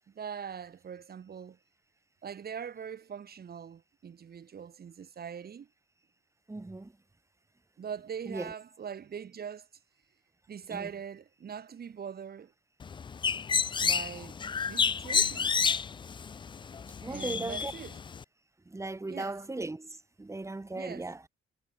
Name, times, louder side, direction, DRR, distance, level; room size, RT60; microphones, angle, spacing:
voice 1, 0.0-1.6 2.2-5.7 7.8-9.7 10.5-12.5 13.8-14.4 14.7-15.6 17.1-18.0 19.1-19.4 20.8-21.1, right 7 dB, 50° right, 6.2 m, -42 dB
voice 2, 6.5-6.9 8.3-8.5 10.7-10.9 17.0-17.7 18.7-21.2, right 2 dB, 15° right, 2.3 m, -37 dB
Bird, 12.8-18.2, left 6 dB, 25° left, 0.4 m, -30 dB
cardioid pair, 90°, 20 cm